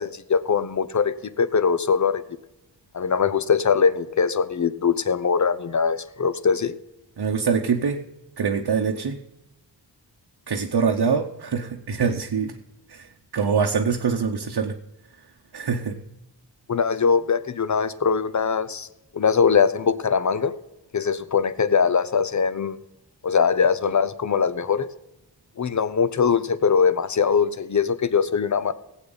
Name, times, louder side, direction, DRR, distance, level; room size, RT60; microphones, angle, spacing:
voice 1, 0.0-2.2 2.9-6.7 16.7-18.9 19.1-20.5 20.9-22.8 23.2-24.9 25.6-28.7, left 6 dB, 40° left, 14 dB, 0.7 m, -22 dB
voice 2, 7.2-8.0 8.4-9.2 10.5-12.5 12.9-13.1 13.3-14.8 15.5-16.0, right 6 dB, 65° right, 2 dB, 0.9 m, -24 dB
18.5 x 8.2 x 4.0 m, 0.94 s
wide cardioid pair, 90°, 43 cm